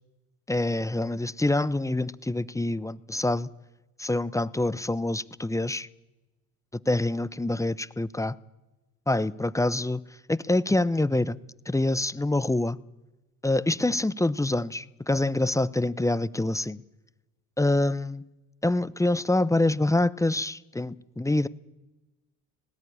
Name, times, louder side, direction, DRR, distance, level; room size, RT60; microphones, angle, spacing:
voice 1, 0.5-3.5 4.0-5.9 6.9-8.4 9.1-10.0 10.3-11.4 11.7-12.8 13.4-16.8 17.6-18.2 18.6-21.5, left 2 dB, 10° left, 18 dB, 0.7 m, -26 dB
19.0 x 15.0 x 9.9 m, 1.1 s
supercardioid pair, 70°, 41 cm